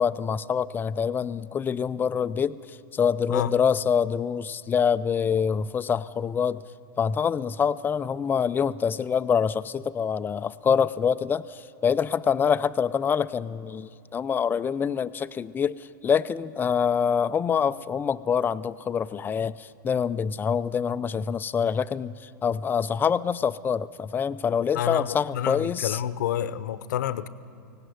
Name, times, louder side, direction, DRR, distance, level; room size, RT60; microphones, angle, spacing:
voice 1, 0.0-6.6 7.0-26.0, left 7 dB, 20° left, 0.5 m, -25 dB
voice 2, 24.7-27.3, left 10 dB, 60° left, 0.9 m, -29 dB
23.0 x 17.5 x 9.4 m
figure-of-eight pair, 95°, 11 cm